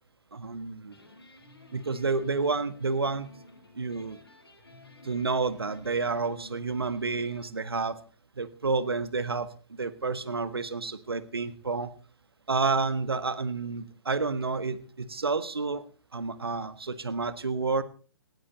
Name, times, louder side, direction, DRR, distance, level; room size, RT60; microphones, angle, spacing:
voice 1, 0.3-0.9 1.7-3.3 3.8-4.2 5.0-8.0 8.4-9.5 9.8-11.9 12.5-15.8 16.1-17.8, right 4 dB, 75° right, 13 dB, 1.6 m, -29 dB
sound 1, 0.8-7.5, left 1 dB, 75° left, 7.9 m, -53 dB
19.0 x 14.5 x 4.1 m, 0.37 s
figure-of-eight pair, 125°, 13 cm